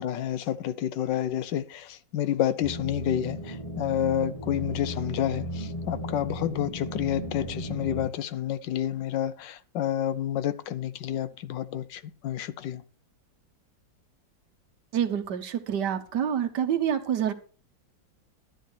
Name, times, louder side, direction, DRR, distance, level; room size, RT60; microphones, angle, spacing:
voice 1, 0.0-12.8, left 11 dB, 80° left, 1.4 m, -29 dB
sound 1, 2.6-8.1, equal, 20° left, 2.1 m, -36 dB
voice 2, 14.9-17.3, right 9 dB, 70° right, 1.7 m, -27 dB
12.0 x 10.0 x 4.5 m
omnidirectional pair, 1.9 m